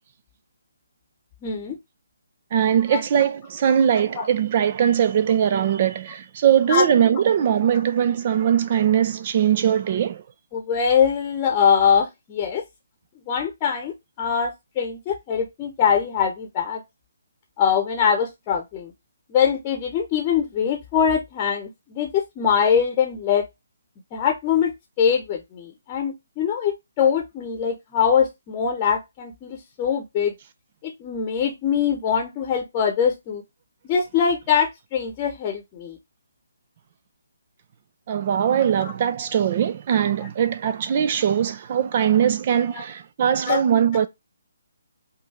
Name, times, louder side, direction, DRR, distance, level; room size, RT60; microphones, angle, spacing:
voice 1, 1.4-1.8 2.9-3.0 4.2-4.3 6.7-6.8 10.5-12.6 13.3-16.8 17.6-18.9 19.3-23.4 24.1-30.3 30.8-33.4 33.8-36.0 43.5-43.6, left 7 dB, 20° left, 0.9 m, -23 dB
voice 2, 2.5-10.2 38.1-44.1, right 9 dB, 35° right, 0.4 m, -21 dB
5.3 x 2.7 x 3.3 m
figure-of-eight pair, 140°, 0 cm